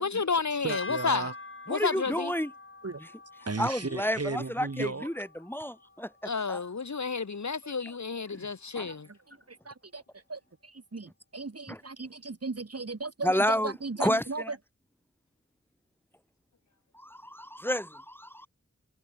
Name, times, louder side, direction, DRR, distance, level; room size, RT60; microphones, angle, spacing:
voice 1, 0.0-1.3 1.7-2.3 6.2-9.1, left 5 dB, 70° left, 2.8 m, -31 dB
voice 2, 0.6-1.3 2.8-3.0 3.5-5.1 7.6-7.8 8.7-9.0 9.5-14.6, right 3 dB, 55° right, 6.7 m, -36 dB
sound 1, 0.7-7.0, left 3 dB, 45° left, 5.3 m, -46 dB
voice 3, 1.7-2.5 3.0-3.1 3.6-6.1 6.5-6.6 8.3-8.5 8.7-8.9 11.7-11.8 13.2-14.5 16.9-18.5, equal, 5° left, 3.0 m, -30 dB
wide cardioid pair, 65°, 29 cm